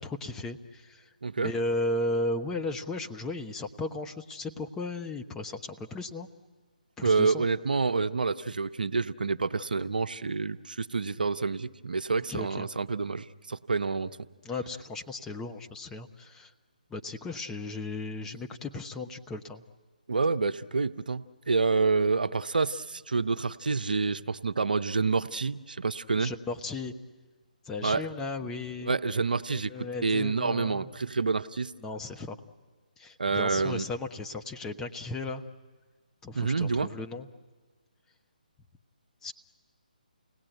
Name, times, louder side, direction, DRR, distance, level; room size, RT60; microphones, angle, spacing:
voice 1, 0.0-1.0 1.4-6.3 7.0-7.4 12.3-12.7 14.4-16.5 16.9-19.6 26.2-26.9 27.7-28.9 29.5-30.9 31.8-32.4 33.0-35.4 36.2-37.3 39.2-39.3, left 2 dB, 10° left, 4 dB, 0.9 m, -35 dB
voice 2, 1.2-1.5 7.0-14.2 20.1-26.3 27.8-28.1 28.8-31.7 33.2-33.8 36.3-36.9, right 4 dB, 75° right, 11 dB, 0.8 m, -28 dB
29.0 x 18.5 x 9.1 m, 1.4 s
figure-of-eight pair, 145°, 5 cm